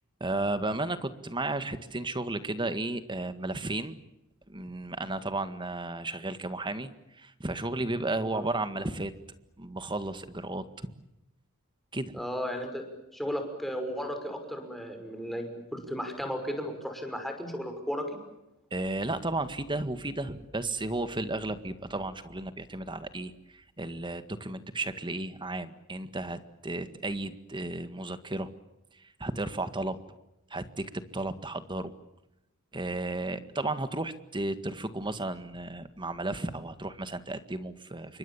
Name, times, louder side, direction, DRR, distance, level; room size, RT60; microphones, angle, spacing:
voice 1, 0.2-4.0 4.5-9.1 9.6-10.9 11.9-12.2 18.7-28.5 29.2-30.0 30.5-31.9 32.7-38.2, right 2 dB, 20° right, 11 dB, 1.8 m, -34 dB
voice 2, 12.1-12.8 13.1-18.1, equal, ahead, 5 dB, 5.8 m, -35 dB
29.0 x 24.5 x 7.2 m, 0.90 s
head